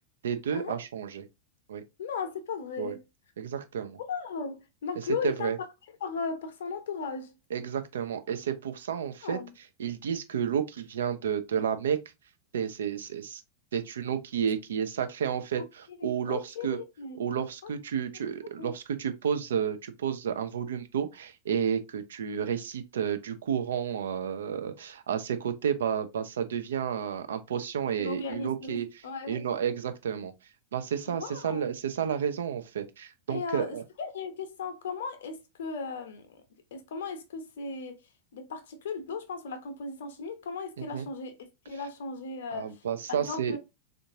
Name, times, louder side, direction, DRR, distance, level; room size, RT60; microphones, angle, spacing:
voice 1, 0.2-1.2 1.7-1.8 2.8-2.9 3.4-4.0 5.2-5.6 7.5-9.4 9.8-12.0 12.5-13.4 13.7-16.8 17.2-28.9 29.3-30.3 30.7-33.8 40.8-41.1 42.5-43.6, right 8 dB, 65° right, 0.4 m, -31 dB
voice 2, 2.0-3.0 4.1-5.5 6.0-7.3 9.2-9.5 16.0-17.2 18.6-18.8 28.0-29.4 31.1-31.7 33.3-36.4 36.7-38.0 38.3-41.4 41.7-42.8 43.1-43.6, left 5 dB, 60° left, 0.7 m, -36 dB
3.5 x 2.5 x 2.6 m
figure-of-eight pair, 90°, 0 cm